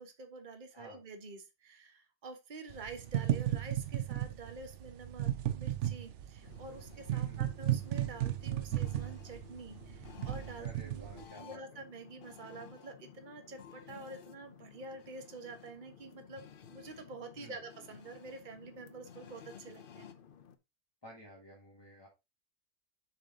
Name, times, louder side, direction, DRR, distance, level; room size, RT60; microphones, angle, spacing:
voice 1, 0.0-20.1, right 3 dB, 35° right, 6 dB, 1.3 m, -48 dB
sound 1, 2.7-11.2, right 12 dB, 60° right, 0.9 m, -35 dB
sound 2, 6.4-20.6, left 8 dB, 50° left, 0.7 m, -55 dB
voice 2, 7.1-7.5 10.6-11.8 17.4-17.6 21.0-22.1, equal, 15° left, -4 dB, 2.0 m, -53 dB
6.9 x 5.0 x 3.8 m, 0.24 s
omnidirectional pair, 1.5 m